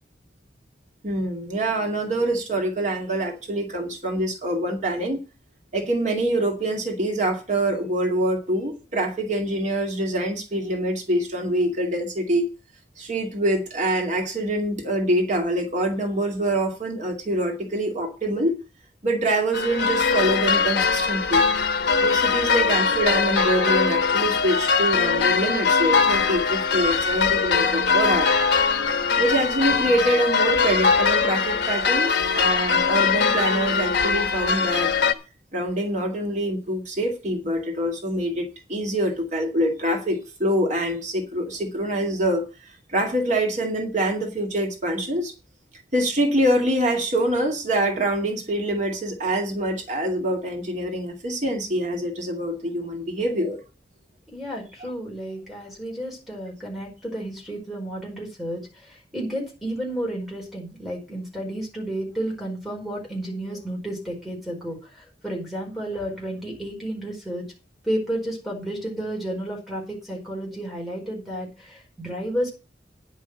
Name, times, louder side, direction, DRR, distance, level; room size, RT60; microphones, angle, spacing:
voice 1, 1.0-5.2 5.7-12.4 13.0-18.5 19.0-21.4 22.0-28.3 29.2-34.9 35.5-45.3 45.9-53.6, right 1 dB, 45° right, 2.3 m, -25 dB
sound 1, 19.5-35.1, left 5 dB, 75° left, 1.0 m, -21 dB
voice 2, 54.3-67.5 67.8-72.5, right 1 dB, ahead, 4.7 m, -32 dB
10.0 x 5.6 x 7.8 m
head